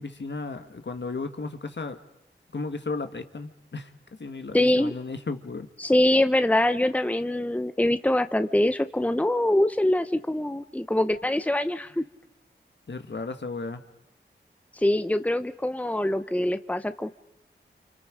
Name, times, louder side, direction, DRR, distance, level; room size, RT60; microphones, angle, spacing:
voice 1, 0.0-2.0 2.5-3.9 4.2-5.7 12.9-13.8, left 3 dB, 65° left, 8 dB, 1.7 m, -34 dB
voice 2, 4.5-4.9 5.8-12.0 14.8-17.1, left 1 dB, 5° left, 10 dB, 0.9 m, -24 dB
29.5 x 26.5 x 5.1 m, 0.90 s
cardioid pair, 40°, 20 cm